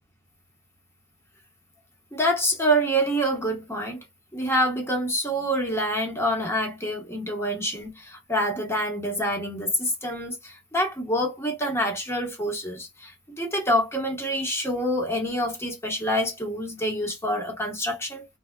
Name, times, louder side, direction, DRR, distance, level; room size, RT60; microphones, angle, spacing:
voice 1, 2.1-4.0 4.3-18.3, equal, 15° left, 1.2 m, -26 dB
3.5 x 3.3 x 2.2 m
head